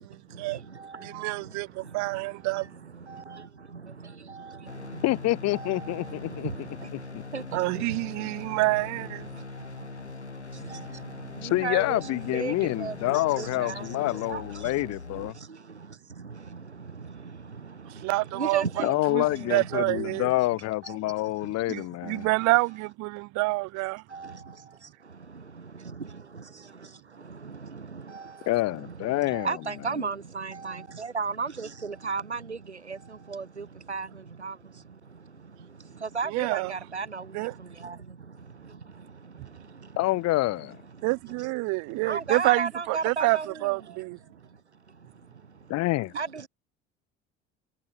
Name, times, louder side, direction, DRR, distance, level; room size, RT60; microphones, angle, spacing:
voice 1, 1.0-2.7 7.5-9.2 18.0-18.8 19.1-20.3 21.7-24.0 36.3-36.7 37.3-37.5 41.0-44.2, right 24 dB, 55° right, 4.5 m, -27 dB
voice 2, 3.1-3.4 4.3-4.5 4.9-5.0 5.5-6.0 6.4-6.5 7.3-7.4 7.8-7.9 10.7-10.8 11.4-14.4 18.3-18.9 19.2-19.7 20.8-21.0 24.1-24.4 27.5-28.2 29.3-32.6 32.9-33.0 33.3-34.1 34.4-34.5 36.0-37.3 37.8-38.0 42.1-43.6 46.2-46.5, right 5 dB, 80° right, 5.4 m, -34 dB
sound 1, 4.7-15.3, left 3 dB, 85° left, 6.5 m, -41 dB
voice 3, 5.0-6.5 7.1-7.2 11.4-15.3 18.8-22.3 28.5-29.5 40.0-40.8 45.7-46.1, left 18 dB, 50° left, 4.8 m, -27 dB
figure-of-eight pair, 60°, 33 cm